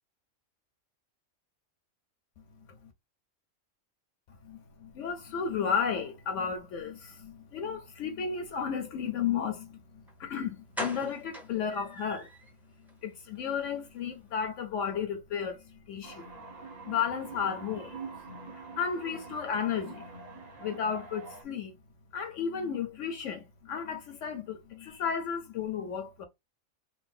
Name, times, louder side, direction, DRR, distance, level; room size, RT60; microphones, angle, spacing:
voice 1, 4.4-12.3 13.0-16.3 16.8-18.0 18.5-20.1 20.6-21.8 22.1-26.2, left 7 dB, 70° left, 0.9 m, -33 dB
sound 1, 10.1-10.2 10.7-12.5 12.9-13.0 13.3-13.5 13.8-13.9, equal, ahead, 0.6 m, -40 dB
sound 2, 16.0-21.4, right 4 dB, 35° right, 0.9 m, -45 dB
2.6 x 2.6 x 3.3 m
omnidirectional pair, 1.4 m